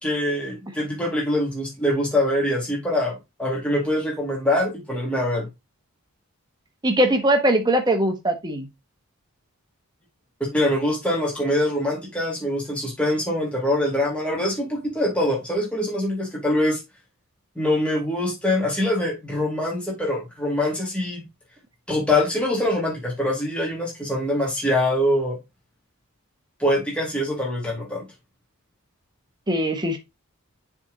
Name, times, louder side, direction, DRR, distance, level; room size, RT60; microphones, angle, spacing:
voice 1, 0.0-5.5 10.5-16.8 17.6-21.2 21.9-25.4 26.6-28.1, left 1 dB, 5° left, 2.2 m, -24 dB
voice 2, 6.8-8.7 29.5-30.0, right 1 dB, 20° right, 1.2 m, -21 dB
7.1 x 3.6 x 4.0 m
head